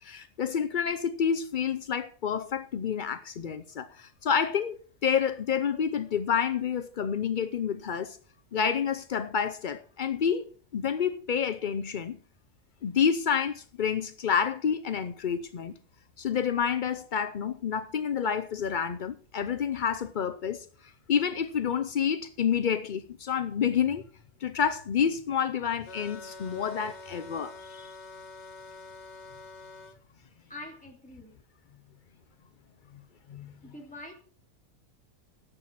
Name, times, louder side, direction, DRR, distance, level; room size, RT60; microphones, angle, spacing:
voice 1, 0.0-8.2 8.5-10.5 10.7-12.2 12.8-15.7 16.2-20.7 21.1-24.0 24.4-27.9 33.3-33.5, left 7 dB, 70° left, 0.4 m, -29 dB
sound 1, 25.8-30.0, left 2 dB, 50° left, 1.2 m, -46 dB
voice 2, 30.5-31.4 33.6-34.1, left 2 dB, 5° left, 2.8 m, -44 dB
11.5 x 7.7 x 5.7 m
omnidirectional pair, 1.7 m